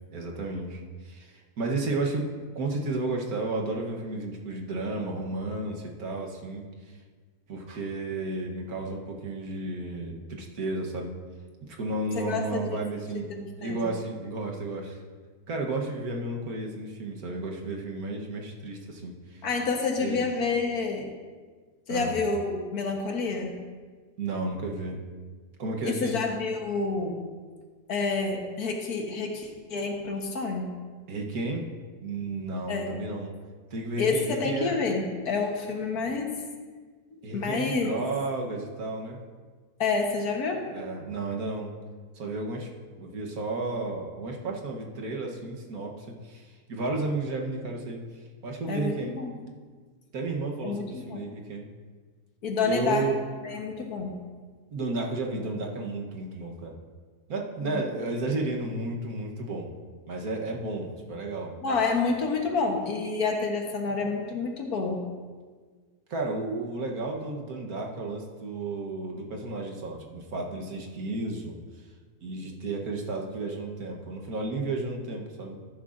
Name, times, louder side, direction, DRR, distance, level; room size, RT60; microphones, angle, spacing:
voice 1, 0.1-2.3 2.5-6.7 7.5-11.1 11.7-13.3 13.6-15.0 15.5-19.4 20.0-20.2 21.9-22.1 24.2-25.0 25.6-26.2 31.1-31.6 32.0-33.3 33.7-34.7 37.2-39.2 40.6-41.7 42.1-42.7 43.0-48.0 48.4-49.1 50.1-51.7 52.6-53.2 54.7-56.8 57.3-59.7 60.1-61.5 66.1-71.6 72.2-75.6, right 2 dB, 65° right, 0 dB, 1.6 m, -32 dB
voice 2, 12.2-12.8 13.3-13.8 19.4-21.1 21.9-23.5 25.8-27.2 27.9-30.7 32.7-32.9 34.0-36.3 37.3-37.9 39.8-40.6 48.7-49.5 50.6-51.3 52.4-53.1 53.4-54.2 57.6-57.8 61.6-65.0, left 4 dB, 65° left, 2 dB, 1.6 m, -28 dB
12.5 x 11.0 x 2.5 m, 1.5 s
omnidirectional pair, 1.8 m